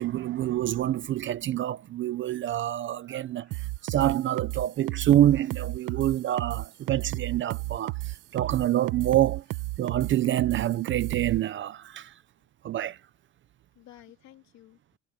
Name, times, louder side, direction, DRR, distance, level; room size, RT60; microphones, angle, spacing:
voice 1, 0.0-9.4 9.8-12.1 12.6-13.0, right 12 dB, 35° right, 0.6 m, -26 dB
voice 2, 3.2-3.5 5.8-5.9 6.3-6.4 8.0-8.5 13.7-14.8, left 14 dB, 55° left, 3.2 m, -55 dB
sound 1, 3.5-11.4, right 19 dB, 65° right, 1.3 m, -33 dB
cardioid pair, 150°, 33 cm